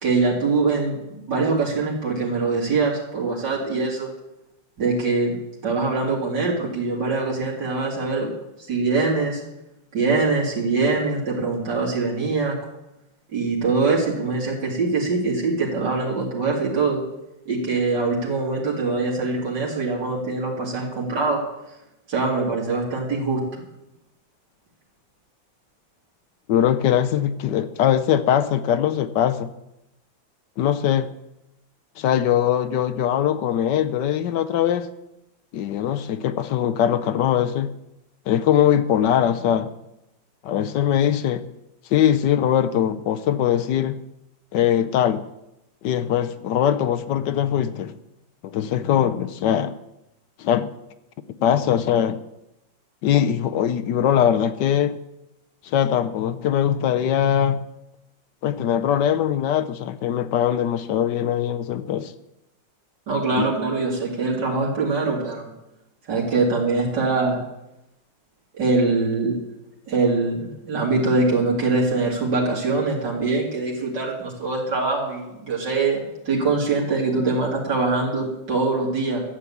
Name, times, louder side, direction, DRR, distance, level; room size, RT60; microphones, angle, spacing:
voice 1, 0.0-4.1 4.8-5.3 5.6-8.3 8.7-9.4 9.9-12.6 13.3-17.0 17.5-21.4 22.1-23.4 63.1-65.5 66.1-67.4 68.6-69.4 69.9-79.2, right 3 dB, 65° right, -3 dB, 3.0 m, -23 dB
voice 2, 26.5-29.5 30.6-31.1 32.0-34.9 35.5-37.7 38.3-39.7 40.4-41.4 41.9-44.0 44.5-45.2 45.8-47.9 48.4-49.8 50.4-50.7 51.4-52.2 53.0-55.0 55.6-57.6 58.4-62.1 63.4-63.5, left 10 dB, 75° left, 11 dB, 1.3 m, -21 dB
13.0 x 7.6 x 8.4 m, 0.91 s
omnidirectional pair, 2.0 m